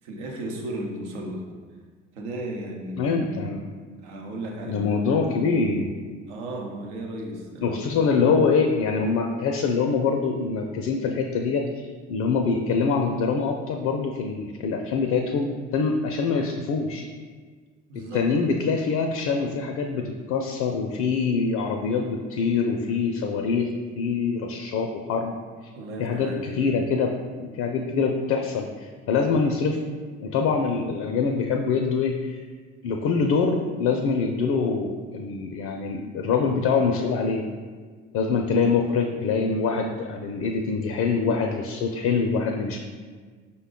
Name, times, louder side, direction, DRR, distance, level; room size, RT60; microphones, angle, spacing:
voice 1, 0.0-1.4 2.1-3.5 4.0-4.9 6.3-8.3 17.9-18.3 25.7-26.8, right 1 dB, 80° right, 0 dB, 0.8 m, -35 dB
voice 2, 3.0-3.7 4.7-5.9 7.6-11.7 12.1-17.1 18.1-25.3 26.0-29.8 30.2-32.4 32.8-37.4 38.1-42.8, left 5 dB, 55° left, 3 dB, 0.5 m, -24 dB
5.1 x 2.2 x 3.6 m, 1.5 s
hypercardioid pair, 65°, 34 cm